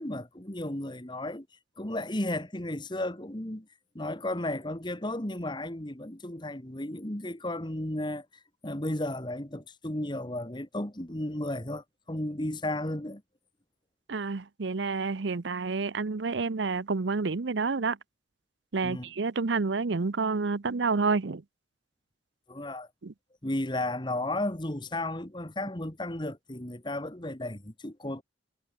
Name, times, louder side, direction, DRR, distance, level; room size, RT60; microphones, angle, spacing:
voice 1, 0.0-1.5 1.8-3.7 3.9-8.3 8.6-13.2 18.8-19.1 22.5-22.9 23.4-28.2, left 1 dB, 25° left, 1.9 m, -34 dB
voice 2, 14.1-18.0 18.7-21.4 23.0-23.1, right 4 dB, 75° right, 0.7 m, -29 dB
head